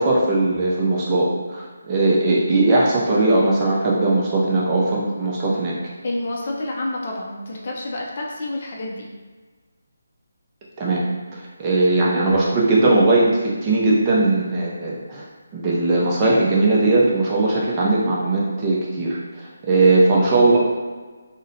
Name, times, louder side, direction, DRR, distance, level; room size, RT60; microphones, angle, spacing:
voice 1, 0.0-5.7 10.8-11.0 11.3-15.2 15.5-20.6, right 2 dB, 25° right, -5 dB, 0.5 m, -19 dB
voice 2, 6.0-9.1, left 1 dB, 45° left, -1 dB, 0.5 m, -28 dB
2.6 x 2.1 x 2.7 m, 1.4 s
figure-of-eight pair, 155°, 0 cm